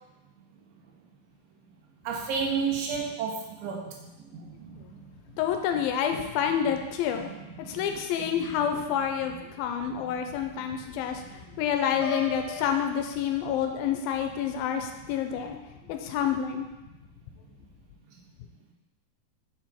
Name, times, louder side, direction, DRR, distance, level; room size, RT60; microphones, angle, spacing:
voice 1, 2.0-5.1 5.7-5.8 6.4-6.7 7.1-8.5 9.8-10.8 11.2-11.3, right 5 dB, 75° right, 0 dB, 2.6 m, -34 dB
voice 2, 5.4-7.3 7.7-15.6 15.9-16.7, left 8 dB, 90° left, 5 dB, 2.4 m, -28 dB
Piano, 12.0-13.9, left 4 dB, 70° left, 2.9 m, -38 dB
6.8 x 4.6 x 4.2 m, 1.0 s
omnidirectional pair, 4.2 m